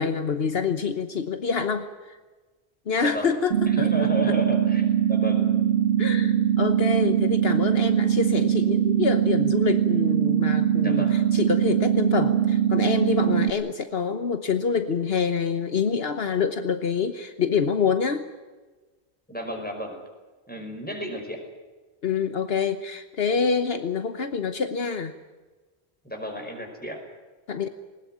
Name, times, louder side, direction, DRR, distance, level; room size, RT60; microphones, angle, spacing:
voice 1, 0.0-1.9 2.9-4.4 6.0-18.2 22.0-25.1 27.5-27.7, left 6 dB, 70° left, 9 dB, 1.3 m, -26 dB
sound 1, 3.5-13.5, right 9 dB, 70° right, 1.5 m, -22 dB
voice 2, 3.7-5.5 10.8-11.2 19.3-20.0 20.5-21.4 26.0-27.0, equal, 10° left, 2 dB, 5.5 m, -33 dB
20.0 x 20.0 x 9.3 m, 1.3 s
omnidirectional pair, 1.1 m